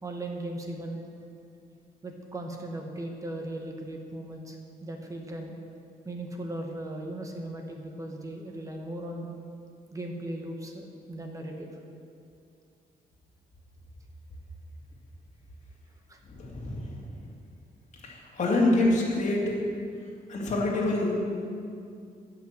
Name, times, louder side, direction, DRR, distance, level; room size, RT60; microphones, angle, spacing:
voice 1, 0.0-1.0 2.0-5.5 6.0-9.3 9.9-11.7 16.1-16.2, right 1 dB, 20° right, 2 dB, 1.1 m, -37 dB
voice 2, 16.2-17.1 18.0-19.6 20.3-21.2, left 2 dB, 50° left, -3 dB, 2.3 m, -26 dB
14.0 x 6.0 x 7.5 m, 2.4 s
wide cardioid pair, 180°, 16 cm